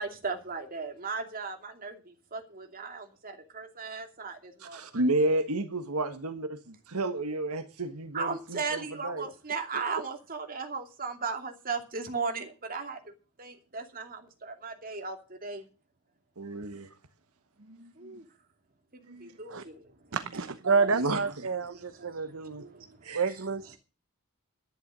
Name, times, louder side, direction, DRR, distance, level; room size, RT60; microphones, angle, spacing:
voice 1, 0.0-4.8 8.1-13.1 13.4-15.6 18.0-18.2 18.9-19.9 21.8-23.4, right 4 dB, 40° right, 2.7 m, -37 dB
voice 2, 4.6-9.3 16.4-16.9 17.7-18.1 19.0-19.3 20.9-21.2 23.0-23.3, right 2 dB, 75° right, 1.6 m, -31 dB
voice 3, 20.1-22.7 23.1-23.8, right 4 dB, 60° right, 0.9 m, -29 dB
12.0 x 10.5 x 6.3 m
head